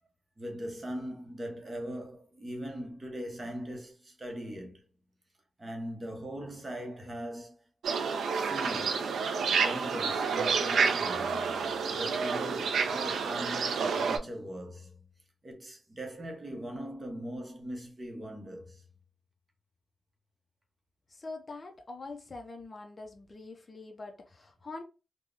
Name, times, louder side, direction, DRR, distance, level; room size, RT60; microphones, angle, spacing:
voice 1, 0.4-4.8 5.6-7.6 8.3-9.3 9.6-15.1 15.4-18.8, equal, 25° right, 0.7 m, -40 dB
sound 1, 7.8-14.2, right 5 dB, 80° right, 0.3 m, -29 dB
voice 2, 21.1-24.8, left 3 dB, 30° left, 0.4 m, -44 dB
3.4 x 2.0 x 2.4 m
wide cardioid pair, 120°, 0 cm